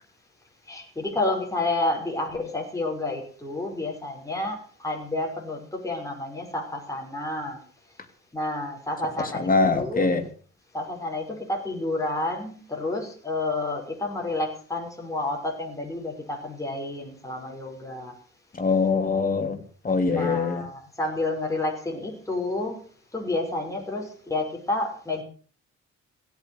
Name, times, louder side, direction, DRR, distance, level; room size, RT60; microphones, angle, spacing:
voice 1, 0.7-7.6 8.3-10.1 10.7-18.1 20.1-22.8 23.1-25.2, left 2 dB, 10° left, -1 dB, 5.9 m, -30 dB
voice 2, 9.2-10.2 18.6-19.6 19.8-20.6, left 4 dB, 30° left, 7 dB, 3.0 m, -23 dB
17.0 x 8.3 x 8.1 m, 0.43 s
cardioid pair, 90°, 30 cm